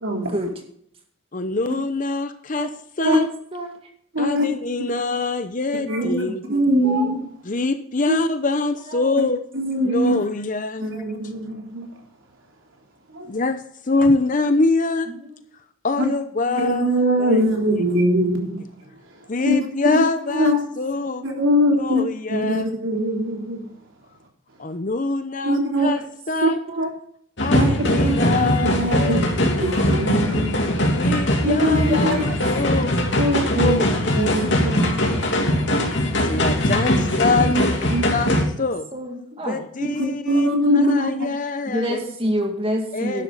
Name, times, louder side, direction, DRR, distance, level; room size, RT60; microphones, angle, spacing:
voice 1, 0.0-0.5 3.0-3.2 4.1-4.5 5.9-6.2 6.5-7.2 8.1-8.2 9.5-10.2 10.8-11.8 13.1-13.3 16.6-18.6 19.5-19.6 19.8-20.0 20.3-20.6 21.2-22.0 22.3-23.6 25.4-25.9 26.4-26.5 26.8-26.9 27.5-30.6 31.4-32.2 33.2-33.8 34.1-35.1 37.5-38.1 39.8-41.1, equal, 70° right, 1 dB, 3.5 m, -22 dB
voice 2, 1.3-2.7 3.0-3.3 4.2-6.4 7.4-9.4 9.8-10.9 13.3-15.1 15.8-17.4 19.3-21.2 21.8-22.7 24.6-26.0 26.3-26.6 27.4-29.8 30.9-33.0 33.5-34.5 36.2-37.8 38.1-38.3 38.6-38.9 39.4-42.1 42.9-43.2, left 3 dB, 40° left, 10 dB, 0.8 m, -24 dB
voice 3, 6.0-6.3 8.1-8.2 9.0-9.1 11.0-11.1 16.4-16.6 21.0-21.1 26.5-26.9 31.7-32.4 32.6-32.9 38.9-39.6 41.7-43.2, equal, 25° right, 3 dB, 2.2 m, -28 dB
sound 1, 27.4-38.4, left 1 dB, 60° left, 2.9 m, -21 dB
12.0 x 11.0 x 4.0 m, 0.67 s
head